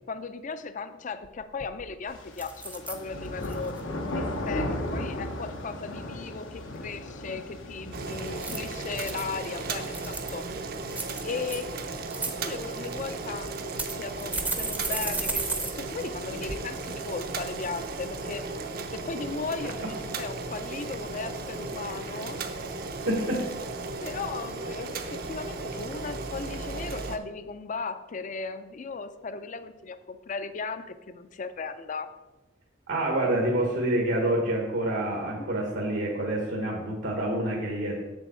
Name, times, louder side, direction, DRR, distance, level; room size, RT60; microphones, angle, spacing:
voice 1, 0.1-3.8 4.1-10.4 11.2-11.7 12.2-18.4 18.9-22.4 24.0-32.1 35.4-35.5, left 4 dB, 40° left, 11 dB, 0.5 m, -37 dB
sound 1, 1.2-1.3 1.6-1.9 2.4-3.0 3.4-3.8 8.3-9.2 9.8-10.4 10.9-11.6 12.0-12.3 13.1-13.2 13.8-15.7 16.0-16.1 16.5-16.6, right 3 dB, 10° right, 0.6 m, -33 dB
sound 2, 2.1-10.1, left 1 dB, 85° left, 1.0 m, -36 dB
Boiling, 7.9-27.2, right 3 dB, 50° right, 0.7 m, -36 dB
voice 2, 23.1-23.5 32.9-38.0, right 1 dB, 80° right, -2 dB, 1.4 m, -27 dB
7.0 x 7.0 x 4.3 m, 1.1 s
head